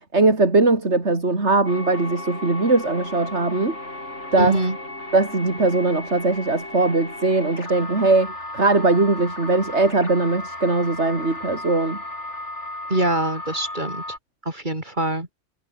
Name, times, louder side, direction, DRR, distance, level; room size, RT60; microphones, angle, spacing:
voice 1, 0.0-3.8 4.3-4.5 5.1-12.0, right 3 dB, 65° right, 3.9 m, -20 dB
sound 1, 1.7-14.2, left 1 dB, 65° left, 7.2 m, -35 dB
voice 2, 4.4-4.8 12.9-14.0 14.4-15.3, right 1 dB, 40° right, 4.5 m, -23 dB
omnidirectional pair, 1.3 m